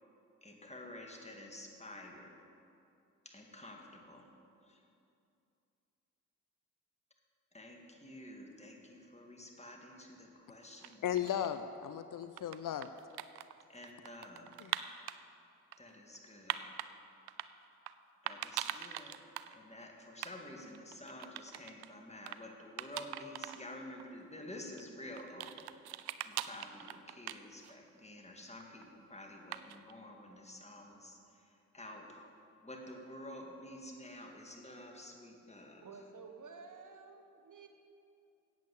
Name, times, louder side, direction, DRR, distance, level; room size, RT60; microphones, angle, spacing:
voice 1, 0.4-2.3 3.3-4.3 4.7-4.8 7.5-11.1 13.7-14.5 15.8-16.6 18.2-19.2 19.5-25.7 26.2-31.2 31.7-32.2 32.6-35.9, left 1 dB, 15° left, 1 dB, 2.2 m, -50 dB
sound 1, 10.6-11.6 12.2-15.2 15.7-16.9 17.3-17.9 18.3-19.5 19.8-19.9 20.1-20.3 20.6-21.9 22.3-22.4 22.8-23.6 24.0-24.1 24.7-27.9 28.2-28.8 29.5-29.9, right 13 dB, 75° right, 0.5 m, -42 dB
voice 2, 11.0-12.9 14.6-14.8, left 10 dB, 55° left, 10 dB, 0.5 m, -36 dB
voice 3, 35.8-37.7, right 4 dB, 50° right, 5 dB, 1.3 m, -52 dB
8.3 x 8.2 x 8.3 m, 2.6 s
hypercardioid pair, 40°, 39 cm